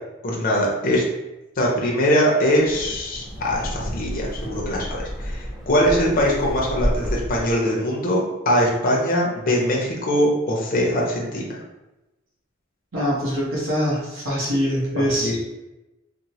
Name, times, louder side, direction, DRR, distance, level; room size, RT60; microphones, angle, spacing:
voice 1, 0.2-1.0 1.6-11.4 15.2-15.4, equal, 45° left, -2 dB, 0.5 m, -22 dB
Wind, 2.5-7.6, equal, ahead, 0.6 m, -30 dB
voice 2, 12.9-15.4, equal, 75° right, -5 dB, 0.9 m, -23 dB
2.9 x 2.0 x 2.8 m, 0.99 s
head